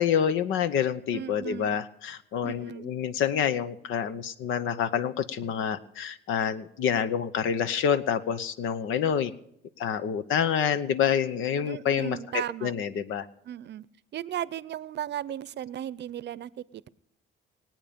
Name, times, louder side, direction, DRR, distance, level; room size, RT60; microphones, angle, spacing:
voice 1, 0.0-9.3 9.8-12.2 12.6-13.3, left 8 dB, 85° left, 13 dB, 0.8 m, -27 dB
voice 2, 1.1-1.7 2.4-2.9 11.6-12.8 13.4-13.9 14.1-16.9, right 11 dB, 60° right, 19 dB, 0.6 m, -36 dB
20.5 x 8.9 x 5.1 m, 0.77 s
cardioid pair, 90°, 20 cm